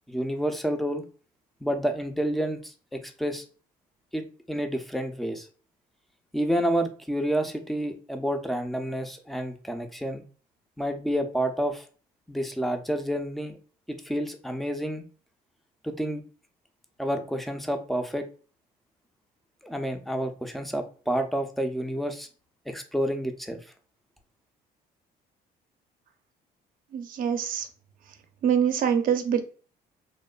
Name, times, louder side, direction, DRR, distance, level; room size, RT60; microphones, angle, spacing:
voice 1, 0.1-1.0 1.6-3.4 4.1-5.5 6.3-10.2 10.8-11.8 12.3-13.6 13.9-15.0 15.8-16.2 17.0-18.3 19.6-22.3 22.7-23.6, equal, ahead, 6 dB, 0.3 m, -29 dB
voice 2, 26.9-27.7 28.4-29.4, right 8 dB, 55° right, 7 dB, 0.5 m, -24 dB
2.9 x 2.1 x 2.3 m, 0.39 s
cardioid pair, 110°, 17 cm